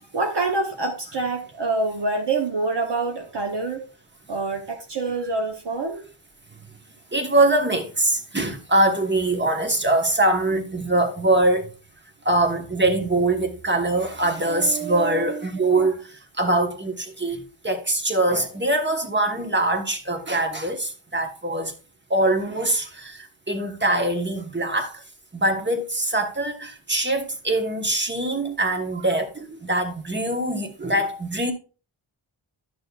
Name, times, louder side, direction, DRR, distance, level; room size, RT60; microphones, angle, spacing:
voice 1, 0.1-3.8 4.3-6.0 14.5-15.9 23.6-23.7, right 3 dB, 55° right, 1.0 m, -27 dB
voice 2, 7.1-11.7 12.2-21.7 22.1-25.0 25.3-31.5, right 2 dB, 20° right, 1.2 m, -23 dB
11.0 x 6.4 x 2.4 m
wide cardioid pair, 100°, 48 cm